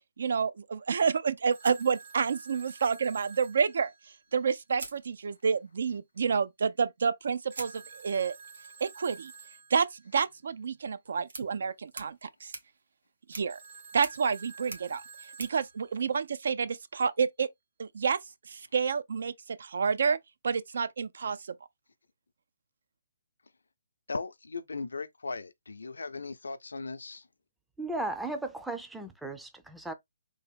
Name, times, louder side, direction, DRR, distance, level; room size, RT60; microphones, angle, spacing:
voice 1, 0.2-3.9 4.3-8.4 8.8-9.3 9.7-9.9 10.1-12.5 13.3-13.6 13.9-15.0 15.4-17.5 17.8-18.2 18.5-19.3 19.6-20.2 20.4-21.4, right 6 dB, 65° right, 0.4 m, -29 dB
Telephone, 1.5-4.6 7.5-10.1 13.5-16.2, right 5 dB, 45° right, 1.3 m, -50 dB
sound 1, 1.6-2.7 4.1-4.2 4.7-5.7 7.5-16.7, right 3 dB, 85° right, 1.2 m, -48 dB
voice 2, 24.1-27.3, left 3 dB, 85° left, 0.5 m, -38 dB
voice 3, 27.8-29.9, right 2 dB, 5° right, 0.4 m, -36 dB
3.4 x 2.0 x 3.4 m
hypercardioid pair, 150°, 0 cm